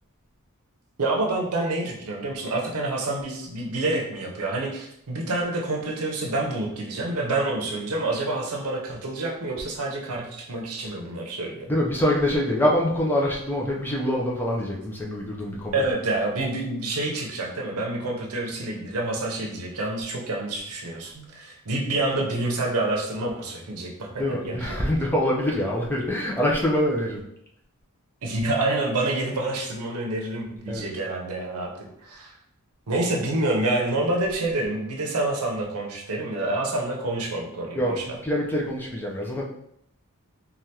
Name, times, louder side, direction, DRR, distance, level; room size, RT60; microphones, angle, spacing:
voice 1, 1.0-11.7 15.7-24.7 28.2-32.3 32.9-38.0, right 2 dB, 80° right, 0 dB, 0.7 m, -28 dB
voice 2, 11.7-15.7 24.2-27.2 30.7-30.9 37.7-39.4, left 1 dB, 10° left, -3 dB, 0.4 m, -25 dB
3.3 x 2.3 x 2.8 m, 0.75 s
head